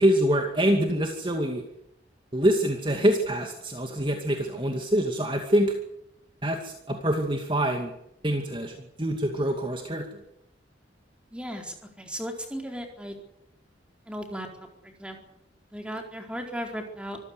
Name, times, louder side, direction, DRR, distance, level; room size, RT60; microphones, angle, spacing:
voice 1, 0.0-1.6 2.3-5.7 6.4-7.9 8.2-10.1, right 1 dB, 25° right, 4 dB, 2.4 m, -25 dB
voice 2, 11.3-13.1 14.1-14.5 14.8-15.2 15.7-17.2, equal, 5° right, 3 dB, 4.3 m, -36 dB
25.5 x 15.5 x 9.7 m, 0.80 s
head